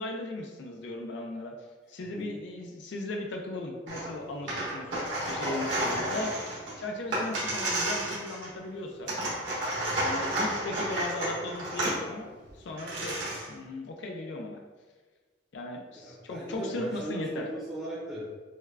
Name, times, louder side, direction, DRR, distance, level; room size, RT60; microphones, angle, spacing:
voice 1, 0.0-1.6 1.9-4.9 5.3-6.5 6.8-9.1 9.9-13.2 13.4-14.6 15.5-17.5, left 2 dB, 65° left, 2 dB, 0.4 m, -37 dB
sound 1, 3.9-4.1 4.4-8.6 9.1-12.0 12.5-12.6 12.8-13.5, right 1 dB, 70° right, 1.5 m, -31 dB
voice 2, 16.0-18.4, right 1 dB, 5° right, -8 dB, 0.7 m, -37 dB
6.3 x 2.2 x 2.4 m, 1.4 s
head